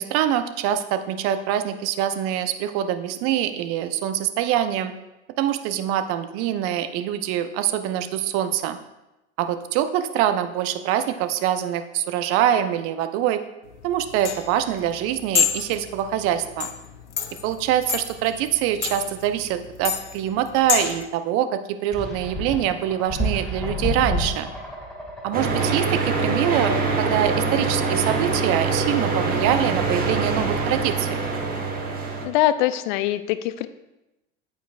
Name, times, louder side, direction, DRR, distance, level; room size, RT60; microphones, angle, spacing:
voice 1, 0.0-4.9 5.4-8.8 9.4-13.4 13.8-16.7 17.4-24.5 25.2-31.2, right 11 dB, 40° right, 10 dB, 0.7 m, -24 dB
sound 1, 13.7-21.1, left 8 dB, 80° left, 0.7 m, -28 dB
sound 2, 21.9-26.5, equal, ahead, 2.3 m, -30 dB
sound 3, 25.3-32.2, right 4 dB, 25° right, 1.4 m, -24 dB
voice 2, 32.2-33.7, left 13 dB, 45° left, 13 dB, 0.5 m, -22 dB
9.0 x 9.0 x 2.4 m, 0.97 s
figure-of-eight pair, 80°, 35 cm